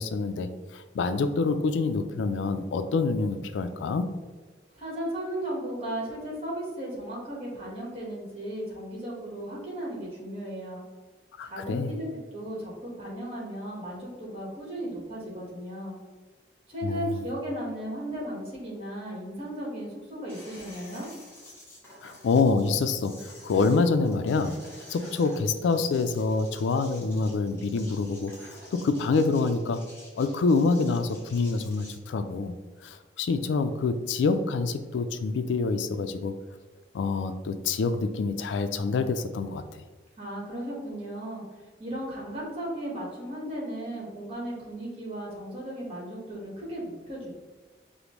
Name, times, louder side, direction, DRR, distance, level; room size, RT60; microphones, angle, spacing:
voice 1, 0.0-4.1 11.4-11.9 16.8-17.2 22.0-24.5 24.9-29.8 30.2-32.5 32.8-36.3 36.9-39.8, left 4 dB, 90° left, 10 dB, 0.3 m, -26 dB
voice 2, 4.7-10.8 11.4-12.1 12.3-16.0 16.7-21.1 40.2-41.4 41.8-47.3, right 1 dB, 35° right, -4 dB, 1.2 m, -35 dB
sound 1, 20.2-31.9, left 1 dB, 15° left, 0.9 m, -50 dB
5.0 x 2.0 x 2.9 m, 1.3 s
head